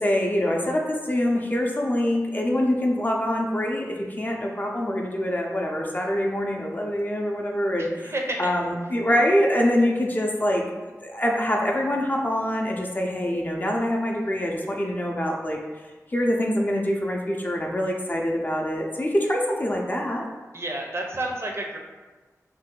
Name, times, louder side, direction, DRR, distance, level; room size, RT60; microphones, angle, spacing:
voice 1, 0.0-8.1 8.4-15.6 16.1-20.2, left 1 dB, 30° left, 0 dB, 0.5 m, -25 dB
voice 2, 7.8-8.5 20.5-21.8, right 1 dB, 50° right, 0 dB, 0.5 m, -30 dB
2.6 x 2.3 x 3.7 m, 1.3 s
wide cardioid pair, 55°, 6 cm